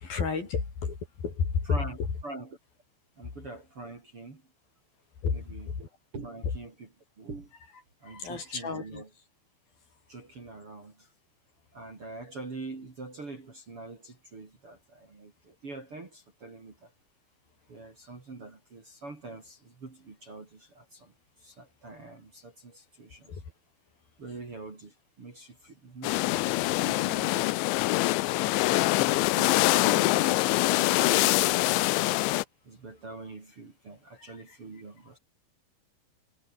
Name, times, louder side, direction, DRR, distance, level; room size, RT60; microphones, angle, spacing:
voice 1, 0.0-1.7 3.2-3.3 5.2-5.9 6.4-6.5 8.0-9.0 23.3-23.5 34.2-34.6, left 5 dB, 45° left, 6.2 m, -32 dB
voice 2, 2.2-2.6 3.2-4.4 5.3-5.7 6.1-6.9 7.2-7.5 8.0-9.1 10.1-11.1 11.7-16.9 17.7-21.1 21.4-23.3 24.2-26.5 26.8-27.6 28.8-30.4 30.7-32.1 32.6-35.2, right 3 dB, 30° right, 4.0 m, -44 dB
sound 1, 26.0-32.4, left 21 dB, 85° left, 2.7 m, -24 dB
omnidirectional pair, 6.0 m